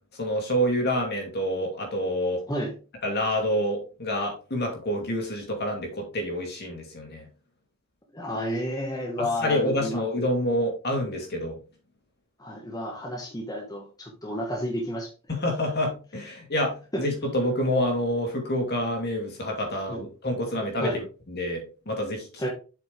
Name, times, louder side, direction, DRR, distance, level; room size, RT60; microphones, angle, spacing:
voice 1, 0.2-2.4 3.0-7.2 9.2-11.6 15.3-22.5, equal, 50° left, 2 dB, 2.5 m, -28 dB
voice 2, 8.1-10.0 12.4-15.1 16.9-17.0 19.9-20.0 20.8-21.0 22.4-22.5, equal, 15° left, -1 dB, 1.5 m, -31 dB
7.7 x 5.8 x 3.4 m, 0.34 s
head